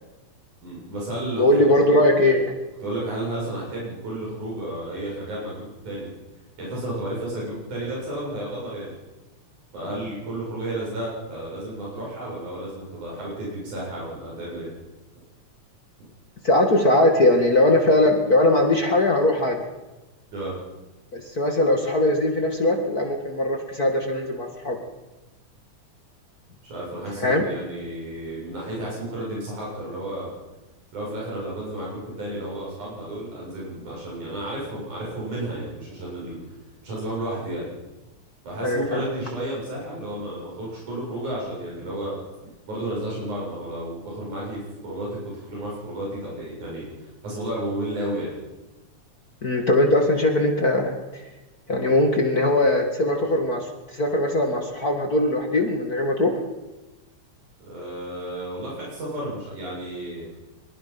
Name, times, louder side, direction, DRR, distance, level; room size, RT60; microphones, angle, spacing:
voice 1, 0.6-1.8 2.8-6.1 6.6-8.9 9.7-14.7 20.3-20.5 26.6-30.3 30.9-36.5 36.8-37.6 38.4-42.2 42.7-48.3 57.6-60.3, right 1 dB, 90° right, -5 dB, 9.0 m, -32 dB
voice 2, 1.4-2.5 16.4-19.6 21.1-24.8 27.2-27.4 38.6-39.0 49.4-51.2 51.7-53.6 54.0-56.4, left 1 dB, 35° left, 3 dB, 2.2 m, -20 dB
23.5 x 22.5 x 6.0 m, 1.1 s
omnidirectional pair, 3.4 m